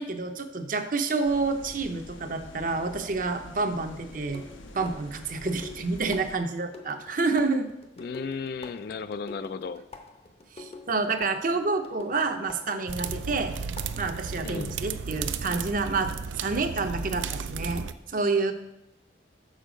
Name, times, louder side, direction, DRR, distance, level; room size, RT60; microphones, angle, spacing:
voice 1, 0.0-4.4 4.7-7.7 10.6-13.5 14.0-18.5, right 3 dB, 45° right, 7 dB, 0.7 m, -28 dB
sound 1, 1.2-6.4, left 1 dB, 90° left, 1.0 m, -46 dB
sound 2, 4.3-14.9, left 3 dB, 30° left, 0.7 m, -47 dB
voice 2, 8.0-9.9 14.4-14.8, left 5 dB, 55° left, 13 dB, 0.3 m, -35 dB
sound 3, 12.9-17.9, right 6 dB, 80° right, 0.4 m, -34 dB
7.2 x 6.5 x 5.1 m, 0.87 s
head